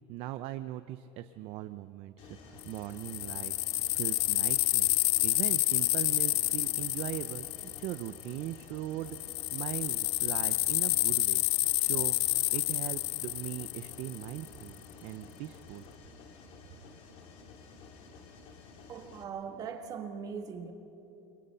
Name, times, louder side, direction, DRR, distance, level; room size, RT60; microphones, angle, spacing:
voice 1, 0.1-12.2 12.5-15.9, right 14 dB, 45° right, 0.6 m, -40 dB
Mechanisms, 2.2-19.2, left 4 dB, 45° left, 2.6 m, -52 dB
sound 1, 2.6-8.5 9.1-14.5, left 22 dB, 65° left, 0.4 m, -29 dB
voice 2, 18.9-20.7, right 6 dB, 25° right, 1.6 m, -40 dB
30.0 x 23.0 x 5.6 m
cardioid pair, 165°, 14 cm